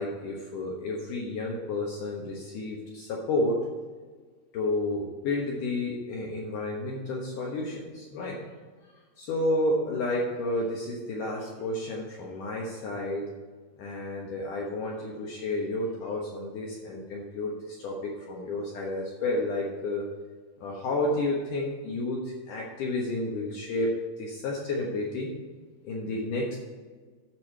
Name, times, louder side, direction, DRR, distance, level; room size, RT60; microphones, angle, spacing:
voice 1, 0.0-3.7 4.5-8.4 8.8-13.3 13.8-20.1 20.6-25.3 25.8-26.6, left 2 dB, 65° left, -2 dB, 2.4 m, -31 dB
8.9 x 7.2 x 4.7 m, 1.5 s
omnidirectional pair, 4.7 m